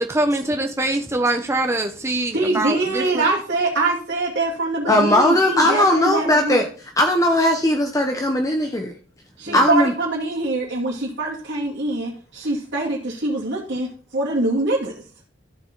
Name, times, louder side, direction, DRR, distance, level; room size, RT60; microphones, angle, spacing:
voice 1, 0.0-3.2 9.5-9.6, right 2 dB, 15° right, 4 dB, 0.8 m, -23 dB
voice 2, 2.3-6.6 9.4-14.9, right 2 dB, 70° right, -6 dB, 2.4 m, -24 dB
voice 3, 4.9-6.7 7.0-8.9 9.5-9.9, left 1 dB, 20° left, 3 dB, 0.8 m, -18 dB
14.0 x 4.7 x 3.9 m, 0.41 s
head